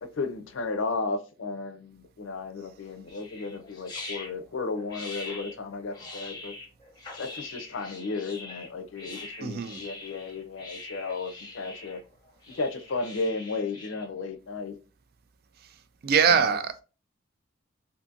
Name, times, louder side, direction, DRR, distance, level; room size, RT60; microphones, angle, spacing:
voice 1, 0.0-6.5 7.2-12.0 12.5-14.7 16.3-16.6, left 3 dB, 70° left, 0.5 m, -34 dB
sound 1, 3.1-14.1, left 2 dB, 20° left, 0.7 m, -43 dB
voice 2, 9.4-9.8 16.0-16.8, right 6 dB, 50° right, 0.3 m, -23 dB
2.6 x 2.6 x 2.4 m
head